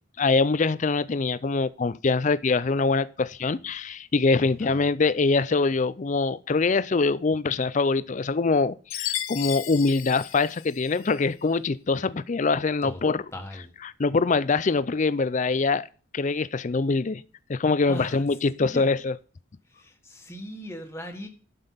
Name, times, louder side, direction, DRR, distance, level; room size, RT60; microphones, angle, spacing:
voice 1, 0.2-13.2 13.8-15.9 16.1-17.2 17.5-19.2, left 4 dB, 35° left, 0.4 m, -24 dB
voice 2, 4.4-4.8 12.8-13.0 13.3-13.7 17.9-18.2 18.6-18.8 19.7-21.3, equal, 15° left, 1.5 m, -39 dB
Chime, 8.9-11.2, left 12 dB, 85° left, 0.7 m, -34 dB
11.5 x 5.4 x 5.7 m
head